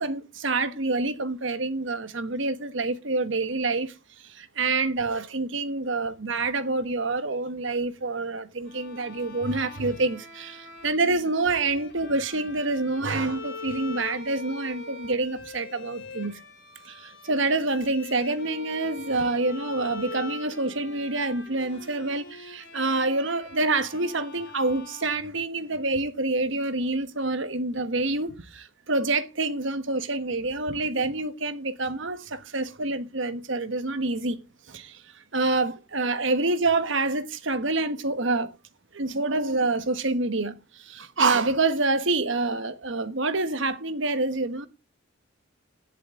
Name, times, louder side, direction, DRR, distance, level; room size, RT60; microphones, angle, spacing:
voice 1, 0.0-16.4 16.8-34.4 34.7-38.5 38.9-44.7, right 3 dB, 70° right, 1.3 m, -27 dB
Bowed string instrument, 8.6-25.9, left 3 dB, 60° left, 5.0 m, -43 dB
16.5 x 7.7 x 3.8 m
head